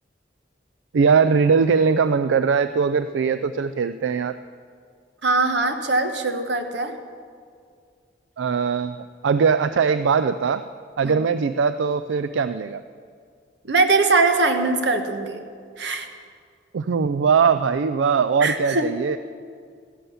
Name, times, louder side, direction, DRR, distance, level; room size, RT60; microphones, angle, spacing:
voice 1, 0.9-4.3 8.4-10.6 11.0-12.8 16.7-19.2, right 5 dB, 90° right, 12 dB, 0.4 m, -20 dB
voice 2, 5.2-6.9 11.0-11.1 13.7-15.4 15.8-16.1 18.4-18.9, right 3 dB, 70° right, 7 dB, 1.2 m, -21 dB
14.0 x 11.0 x 7.2 m, 2.1 s
head